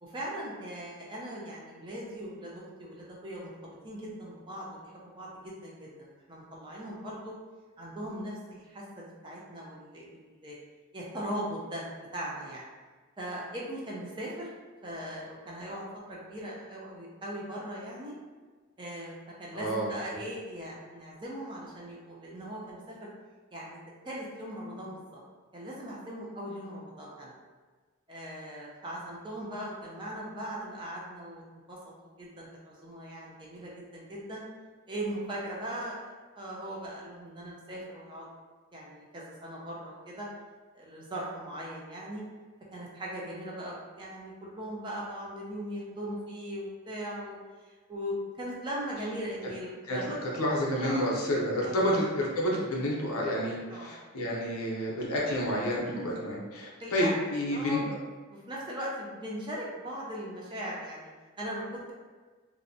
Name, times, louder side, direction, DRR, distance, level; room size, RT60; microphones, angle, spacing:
voice 1, 0.0-7.3 7.8-10.6 10.9-11.9 12.1-12.6 13.2-14.5 14.8-15.8 16.1-18.1 18.8-19.1 19.4-23.1 23.5-23.8 24.0-25.2 25.5-27.3 28.1-31.4 31.7-34.4 34.9-36.1 36.4-38.3 38.7-40.3 40.7-42.2 42.7-47.4 47.6-50.0 50.8-51.0 51.8-52.0 53.7-54.0 56.8-58.0 58.3-61.1 61.4-61.9, equal, 20° right, -5 dB, 0.4 m, -39 dB
voice 2, 19.5-19.9 49.9-50.0 50.4-57.8, equal, 80° left, -3 dB, 0.6 m, -29 dB
2.6 x 2.0 x 2.6 m, 1.4 s
head